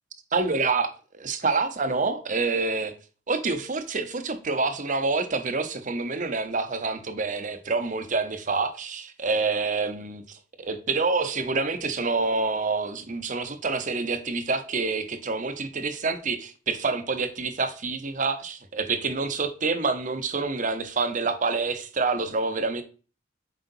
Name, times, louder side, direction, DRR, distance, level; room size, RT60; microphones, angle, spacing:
voice 1, 0.3-2.9 3.3-22.8, right 4 dB, 40° right, 0.8 m, -27 dB
7.7 x 5.0 x 2.6 m
head